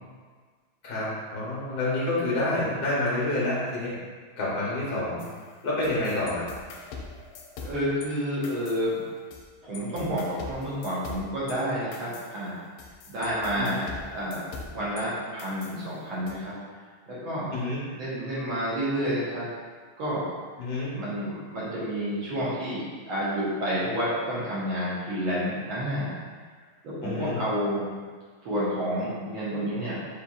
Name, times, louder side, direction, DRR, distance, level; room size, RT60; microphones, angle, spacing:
voice 1, 0.8-4.0 4.4-5.2 5.6-6.5 13.6-13.7 17.5-17.8 20.6-20.9 27.0-27.4, left 2 dB, 55° left, -6 dB, 0.6 m, -28 dB
sound 1, 5.2-8.1 8.4-9.5 9.7-15.0 15.4-16.3, left 4 dB, 85° left, 1.5 m, -43 dB
voice 2, 7.6-9.1 9.6-12.6 13.1-13.9 14.1-14.4 14.7-16.5 17.1-17.5 17.9-19.5 20.0-20.3 20.9-26.1 26.8-27.9 28.4-30.1, equal, 70° right, -10 dB, 1.8 m, -29 dB
6.8 x 3.0 x 2.4 m, 1.5 s
omnidirectional pair, 2.3 m